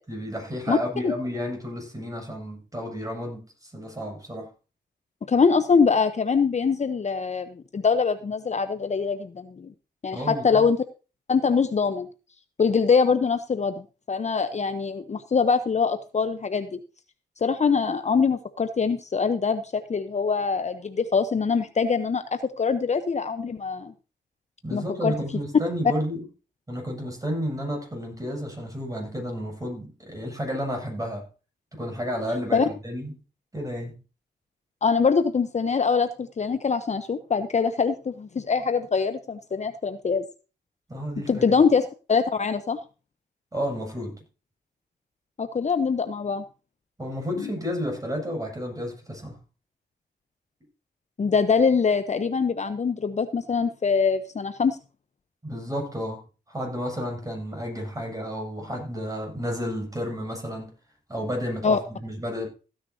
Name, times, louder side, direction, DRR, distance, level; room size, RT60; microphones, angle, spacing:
voice 1, 0.1-4.5 10.1-10.6 24.6-26.3 26.7-31.3 31.7-33.1 33.5-34.0 40.9-41.5 43.5-44.2 47.0-49.4 55.4-56.2 56.5-60.7 61.1-62.5, equal, 20° right, 7.4 m, -31 dB
voice 2, 5.3-9.7 10.0-10.8 11.3-12.1 12.6-16.8 17.4-23.9 24.7-25.1 32.5-32.7 34.8-40.2 41.3-42.8 45.4-46.4 47.4-47.5 51.2-54.8 61.6-61.8, left 5 dB, 40° left, 0.9 m, -23 dB
15.5 x 9.8 x 2.8 m
cardioid pair, 80°, 18 cm